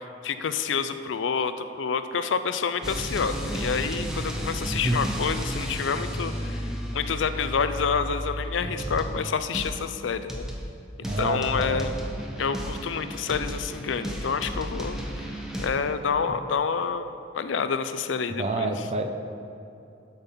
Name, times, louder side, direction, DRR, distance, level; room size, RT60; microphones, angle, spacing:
voice 1, 0.2-10.4 11.2-11.9 12.4-15.3 15.6-18.7, left 6 dB, 75° left, 11 dB, 0.5 m, -28 dB
sound 1, 2.8-9.3 9.5-9.9 10.3-10.8 11.0-15.7, equal, 5° right, 1.0 m, -33 dB
voice 2, 11.0-11.8 16.3-16.4 18.4-19.1, right 2 dB, 35° right, 5 dB, 0.7 m, -28 dB
12.0 x 5.3 x 5.7 m, 2.8 s
head